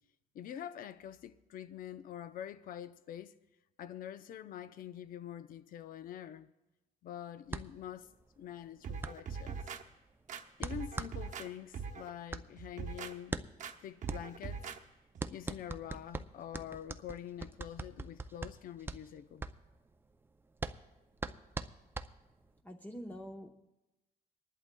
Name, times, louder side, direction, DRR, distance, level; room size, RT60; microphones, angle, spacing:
voice 1, 0.3-3.3 3.8-6.5 7.0-8.1 8.4-9.6 10.6-13.4 13.8-14.6 15.3-19.5, left 10 dB, 55° left, 0.6 m, -45 dB
sound 1, 7.5-22.6, right 3 dB, 15° right, 0.4 m, -43 dB
sound 2, 8.8-9.8 10.3-11.5 11.7-12.1 12.6-13.1 13.6-13.7 14.0-14.8 15.1-15.3, right 6 dB, 45° right, 0.9 m, -42 dB
voice 2, 22.6-23.5, equal, 10° left, 0.8 m, -45 dB
27.0 x 11.0 x 2.2 m
cardioid pair, 110°, 17 cm